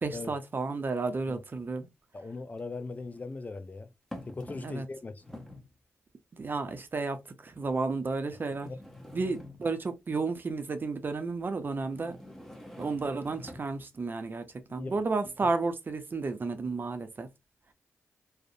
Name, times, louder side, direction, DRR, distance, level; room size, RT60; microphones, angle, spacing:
voice 1, 0.0-1.9 4.6-4.9 6.3-8.7 9.1-12.2 12.8-14.4 14.7-17.3, right 3 dB, 45° right, 0.5 m, -32 dB
sound 1, 1.1-1.2 2.6-3.2 4.1-4.9 5.2-5.7 6.5-6.6 7.4-7.5 8.5-9.9 11.8-13.8, left 1 dB, 5° left, 0.7 m, -47 dB
voice 2, 2.1-3.9 4.3-5.2 8.6-8.8 14.8-15.0, left 3 dB, 30° left, 0.3 m, -39 dB
2.5 x 2.0 x 2.5 m
cardioid pair, 55°, 5 cm